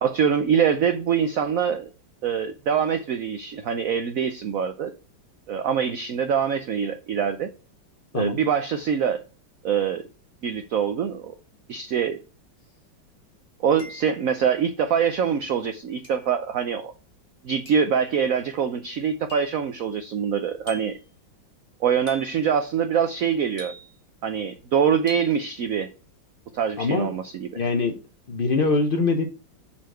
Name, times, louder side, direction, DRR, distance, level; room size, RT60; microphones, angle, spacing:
voice 1, 0.0-1.9 2.2-4.9 5.5-7.5 8.1-9.2 9.6-10.0 10.4-11.3 11.7-12.2 13.6-16.9 17.4-21.0 21.8-23.7 24.2-25.9 26.5-27.5, right 7 dB, 65° right, 0.8 m, -24 dB
sound 1, 12.6-12.7 13.8-14.3 16.0-16.4 17.7-18.0 19.3-19.6 20.7-21.1 22.1-22.5 23.6-24.1 25.1-25.4, equal, 15° left, 2.7 m, -43 dB
voice 2, 26.8-27.2 27.5-28.0 28.3-29.2, left 3 dB, 60° left, 0.5 m, -23 dB
7.3 x 4.4 x 6.1 m
omnidirectional pair, 2.1 m